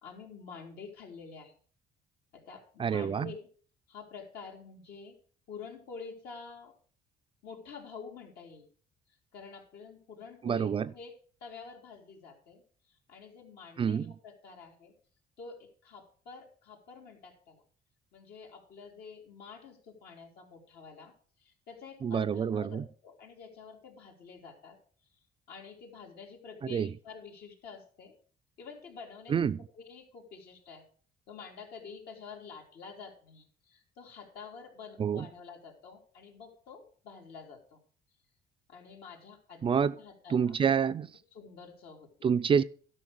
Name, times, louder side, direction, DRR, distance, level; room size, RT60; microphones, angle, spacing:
voice 1, 0.0-1.5 2.3-3.5 3.9-5.2 5.5-6.7 7.4-8.7 9.3-11.1 11.4-12.6 13.1-14.9 15.4-17.6 18.1-21.1 21.4-24.8 25.5-28.1 28.6-30.8 31.3-37.8 38.7-40.5 41.3-42.1, left 5 dB, 70° left, 3.2 m, -48 dB
voice 2, 2.8-3.3 10.4-10.9 13.8-14.1 22.0-22.8 26.7-26.9 29.3-29.6 35.0-35.3 39.6-40.0 40.3-41.1 42.2-42.6, right 7 dB, 30° right, 0.4 m, -27 dB
12.5 x 5.7 x 6.2 m
cardioid pair, 110°, 17 cm